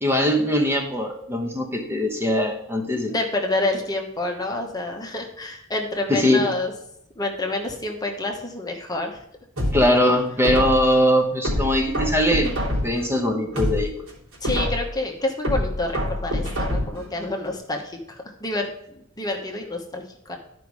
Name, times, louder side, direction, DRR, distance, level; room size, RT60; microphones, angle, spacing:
voice 1, 0.0-3.1 6.1-6.5 9.7-12.5 12.8-14.0, equal, 10° right, 2 dB, 1.0 m, -21 dB
voice 2, 3.1-6.7 7.1-9.2 14.4-20.4, left 2 dB, 20° left, 2 dB, 1.1 m, -28 dB
sound 1, 9.6-11.0 11.4-13.1 13.4-15.0 15.4-17.1 17.4-17.5, equal, 80° right, 3.2 m, -26 dB
11.5 x 5.2 x 4.8 m, 0.77 s
head